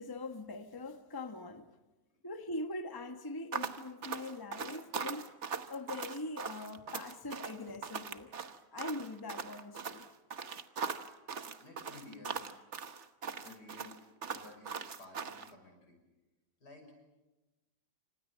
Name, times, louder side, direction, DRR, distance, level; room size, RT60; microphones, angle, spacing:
voice 1, 0.0-1.7 2.2-5.3 5.7-8.3 8.7-10.1, left 2 dB, 15° left, 1.2 m, -42 dB
sound 1, 3.5-15.5, right 6 dB, 45° right, 1.4 m, -40 dB
voice 2, 11.6-12.5 13.3-14.0 14.3-16.0 16.6-16.9, left 2 dB, 80° left, 6.9 m, -54 dB
29.0 x 26.0 x 7.5 m
omnidirectional pair, 1.7 m